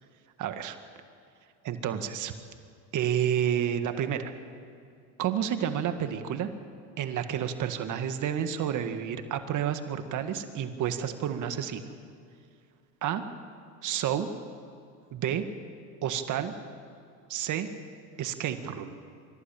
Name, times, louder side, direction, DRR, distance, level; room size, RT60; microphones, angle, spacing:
voice 1, 0.4-0.8 1.6-2.3 2.9-4.3 5.2-6.5 7.0-11.8 13.0-13.2 13.8-14.3 15.1-15.4 16.0-16.5 17.3-17.7 18.2-19.0, right 9 dB, 55° right, 8 dB, 1.8 m, -30 dB
25.0 x 15.0 x 8.8 m, 2.3 s
supercardioid pair, 90°, 36 cm